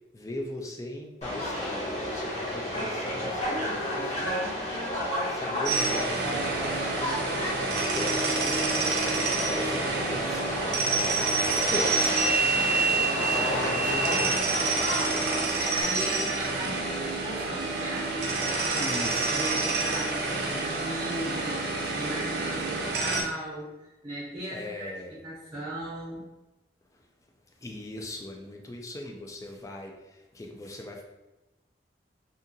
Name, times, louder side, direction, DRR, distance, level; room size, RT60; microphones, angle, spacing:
voice 1, 0.1-4.7 5.3-7.5 7.8-11.0 11.5-12.1 12.8-14.4 18.8-19.3 24.5-25.2 26.9-27.1 27.5-31.0, left 1 dB, 20° left, 1 dB, 0.3 m, -39 dB
Subway metro underground, 1.2-15.8, right 1 dB, 40° left, 0.8 m, -30 dB
sound 1, 5.7-23.2, right 3 dB, 65° right, 0.5 m, -28 dB
voice 2, 13.2-13.5 15.5-19.0 19.3-26.3, right 1 dB, 30° right, -9 dB, 0.7 m, -38 dB
2.7 x 2.4 x 2.5 m, 1.0 s
head